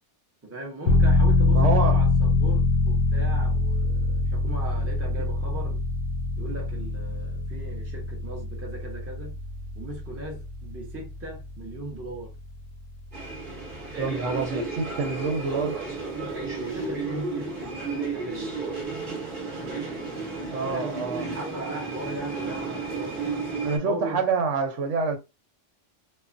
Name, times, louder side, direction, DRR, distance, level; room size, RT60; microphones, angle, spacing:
voice 1, 0.4-5.8 6.4-9.4 9.7-12.4 13.9-14.5 16.2-18.7 20.3-23.4 23.8-24.2, right 2 dB, 15° right, 0.7 m, -38 dB
sound 1, 0.9-13.4 13.7-13.8, left 3 dB, 65° left, 0.7 m, -24 dB
voice 2, 1.5-2.0 2.3-2.4 14.0-15.8 20.5-21.3 23.6-25.2, right 4 dB, 75° right, 1.0 m, -27 dB
sound 2, 13.1-23.8, right 4 dB, 45° right, 1.0 m, -33 dB
3.1 x 2.1 x 2.5 m
omnidirectional pair, 1.3 m